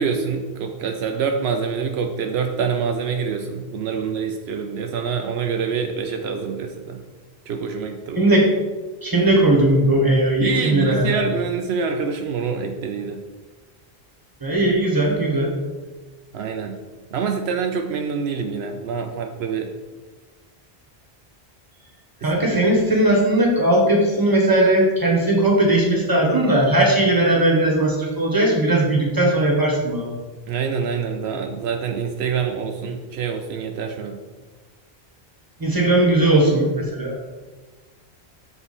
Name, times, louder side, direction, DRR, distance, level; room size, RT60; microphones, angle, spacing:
voice 1, 0.0-7.0 7.5-8.3 10.4-13.2 16.3-16.8 17.1-19.7 22.2-22.3 30.5-34.2, right 6 dB, 80° right, 4 dB, 0.8 m, -26 dB
voice 2, 8.1-8.5 9.0-11.3 14.4-15.5 22.2-30.1 35.6-37.2, right 1 dB, 20° right, -1 dB, 1.4 m, -18 dB
6.9 x 4.1 x 4.2 m, 1.3 s
omnidirectional pair, 1.1 m